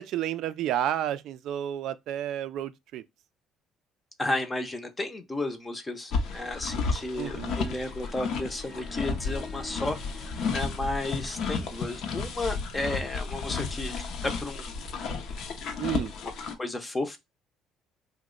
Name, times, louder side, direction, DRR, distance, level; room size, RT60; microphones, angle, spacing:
voice 1, 0.0-3.0 7.2-7.6 15.8-16.1, right 11 dB, 70° right, 0.3 m, -31 dB
voice 2, 4.2-10.0 10.5-14.0 14.2-14.8 16.6-17.2, left 2 dB, 20° left, 0.5 m, -33 dB
sound 1, 6.1-16.5, left 4 dB, 65° left, 0.6 m, -33 dB
Harp, 6.7-12.1, left 2 dB, 20° right, 0.7 m, -50 dB
2.9 x 2.1 x 3.6 m
cardioid pair, 115°, 0 cm